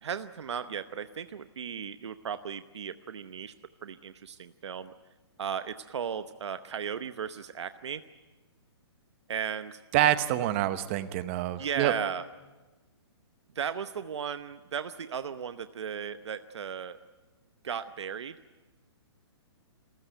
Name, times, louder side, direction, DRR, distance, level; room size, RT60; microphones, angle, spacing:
voice 1, 0.0-3.5 3.8-4.9 5.4-8.0 9.3-9.8 11.6-12.2 13.5-17.0 17.6-18.4, right 7 dB, 80° right, 11 dB, 0.9 m, -36 dB
voice 2, 9.9-11.9, right 14 dB, 25° right, 12 dB, 0.9 m, -26 dB
27.5 x 15.0 x 9.3 m, 1.2 s
hypercardioid pair, 165°, 14 cm